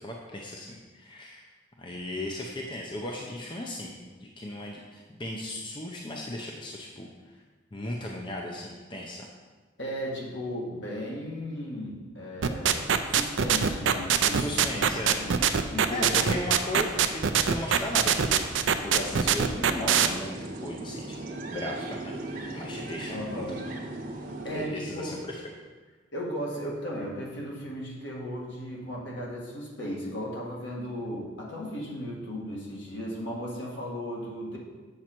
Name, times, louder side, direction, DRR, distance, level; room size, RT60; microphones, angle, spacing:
voice 1, 0.0-1.5 1.8-7.3 7.7-9.3 14.4-15.2 15.9-18.5 18.8-22.2 22.5-23.8 24.5-25.5, left 1 dB, 25° left, -1 dB, 0.6 m, -36 dB
voice 2, 9.8-14.6 15.2-15.3 15.7-16.4 23.1-23.7 24.4-25.2 26.1-34.6, equal, 65° left, -3 dB, 1.8 m, -36 dB
sound 1, 12.4-20.1, right 8 dB, 70° right, 0.5 m, -22 dB
sound 2, 17.8-24.7, right 2 dB, 45° right, 0.9 m, -39 dB
7.7 x 6.2 x 4.4 m, 1.3 s
head